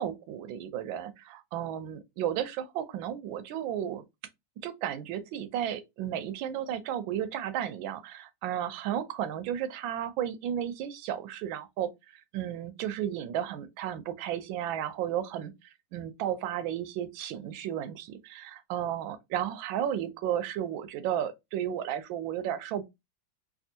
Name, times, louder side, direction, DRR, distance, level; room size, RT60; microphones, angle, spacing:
voice 1, 0.0-4.0 4.6-15.5 15.9-22.8, right 10 dB, 90° right, 1.4 m, -33 dB
3.4 x 2.6 x 2.7 m
omnidirectional pair, 2.1 m